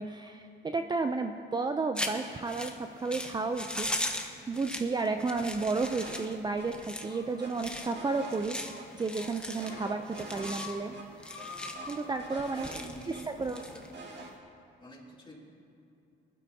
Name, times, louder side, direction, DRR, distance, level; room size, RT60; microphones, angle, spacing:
voice 1, 0.0-11.0 11.9-12.7 13.1-13.6, right 3 dB, 20° right, 6 dB, 0.5 m, -32 dB
sound 1, 1.9-14.3, left 1 dB, 5° left, 1.1 m, -39 dB
sound 2, 5.8-6.3 6.6-6.7 7.0-8.9 9.2-10.7 10.9-11.0 11.4-13.2 13.6-14.3, right 3 dB, 60° right, 1.9 m, -46 dB
sound 3, 7.1-7.7 8.0-8.2 8.6-8.8 9.1-9.9 10.2-10.8 11.1-11.9, left 5 dB, 75° left, 1.6 m, -47 dB
voice 2, 12.3-13.9 14.8-15.4, equal, 25° left, -3 dB, 2.9 m, -48 dB
19.5 x 12.0 x 2.8 m, 2.7 s
cardioid pair, 90°, 20 cm